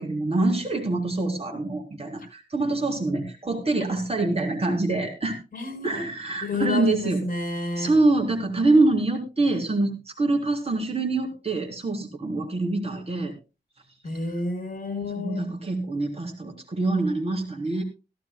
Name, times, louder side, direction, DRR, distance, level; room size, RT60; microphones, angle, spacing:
voice 1, 0.0-5.4 5.8-7.2 7.8-13.3 15.1-17.8, right 2 dB, 35° right, 2 dB, 3.7 m, -25 dB
voice 2, 5.5-6.0 6.4-7.9 14.0-15.4, left 3 dB, 55° left, 5 dB, 4.8 m, -30 dB
16.5 x 15.5 x 2.3 m, 0.28 s
wide cardioid pair, 120°, 17 cm